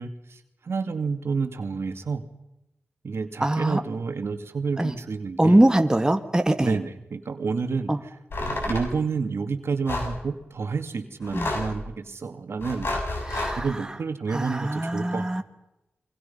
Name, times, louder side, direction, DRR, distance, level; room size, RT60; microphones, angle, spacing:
voice 1, 0.0-2.3 3.0-5.6 6.6-8.2 8.4-12.9 13.6-15.4, right 4 dB, 80° right, 7 dB, 2.4 m, -30 dB
voice 2, 3.4-3.8 4.8-4.9 5.4-6.8 7.9-8.0 11.3-11.5 13.3-13.7 14.3-15.4, right 1 dB, 15° right, 6 dB, 1.9 m, -22 dB
sound 1, 8.3-8.9 9.9-10.2 11.2-11.8 12.6-13.6, left 2 dB, 65° left, 7.4 m, -29 dB
28.0 x 24.0 x 5.6 m, 0.91 s
wide cardioid pair, 80°, 4 cm